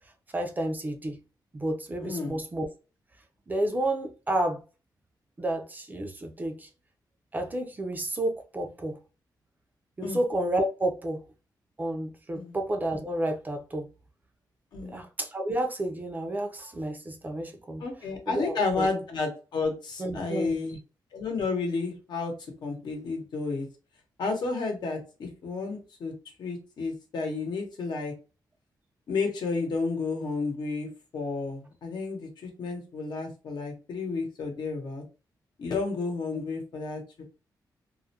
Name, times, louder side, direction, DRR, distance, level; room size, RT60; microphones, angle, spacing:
voice 1, 0.3-1.2 1.5-2.7 3.5-4.6 5.4-6.7 7.3-9.0 10.0-11.2 11.8-13.9 14.8-17.8 18.3-18.9 20.0-20.6, right 1 dB, 25° right, 0.4 m, -30 dB
voice 2, 2.0-2.4 10.0-10.2 12.3-12.5 14.7-15.0 17.8-20.8 21.1-22.3 22.6-23.7 24.2-26.1 26.4-28.1 29.1-30.9 31.1-35.0 35.6-37.0, left 4 dB, 70° left, 0.8 m, -31 dB
2.3 x 2.1 x 2.7 m
cardioid pair, 105°, 8 cm